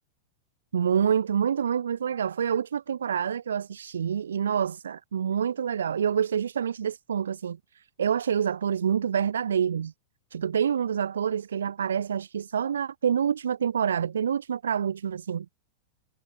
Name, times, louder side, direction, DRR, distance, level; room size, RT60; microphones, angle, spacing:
voice 1, 0.7-9.9 10.3-15.5, right 8 dB, 65° right, 0.6 m, -27 dB
figure-of-eight pair, 90°, 0 cm